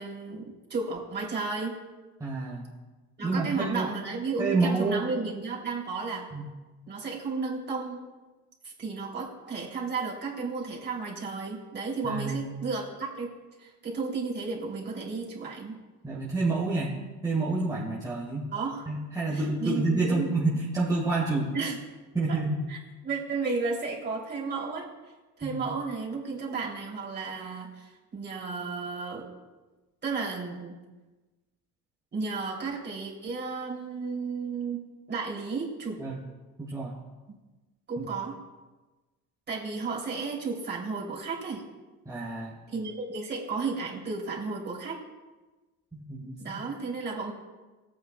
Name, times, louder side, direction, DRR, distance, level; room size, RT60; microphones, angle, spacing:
voice 1, 0.0-1.8 3.2-6.3 6.9-8.0 8.6-13.3 13.6-15.8 18.5-18.9 19.3-20.3 21.5-21.8 22.3-22.4 22.7-22.8 23.0-24.9 25.4-29.3 30.0-30.7 32.1-36.0 37.9-38.4 39.5-41.6 42.7-45.0 46.4-47.3, right 4 dB, 30° right, -4 dB, 3.1 m, -33 dB
voice 2, 2.2-2.7 3.2-3.9 4.4-5.1 6.3-6.5 12.0-12.5 16.0-16.9 17.2-18.5 18.9-21.5 22.1-22.6 25.4-25.6 36.0-36.2 36.6-36.9 38.0-38.1 42.1-42.6 45.9-46.6, right 3 dB, 10° right, -5 dB, 1.7 m, -28 dB
15.0 x 8.7 x 2.3 m, 1.2 s
cardioid pair, 105°, 33 cm